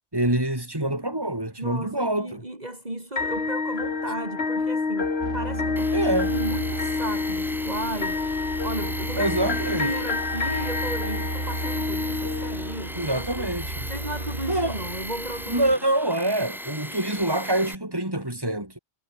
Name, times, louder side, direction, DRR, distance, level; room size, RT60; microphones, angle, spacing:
voice 1, 0.1-2.4 5.9-6.3 9.1-9.9 12.9-13.9 14.5-14.8 15.5-18.8, right 1 dB, 20° right, 4.7 m, -26 dB
voice 2, 1.6-8.2 8.6-13.5 13.9-15.8, right 1 dB, 40° right, 4.5 m, -34 dB
sound 1, 3.2-13.2, left 4 dB, 80° left, 2.4 m, -28 dB
sound 2, 5.2-15.8, right 1 dB, 75° right, 7.9 m, -35 dB
Tools, 5.8-17.8, equal, ahead, 4.8 m, -38 dB
omnidirectional pair, 1.1 m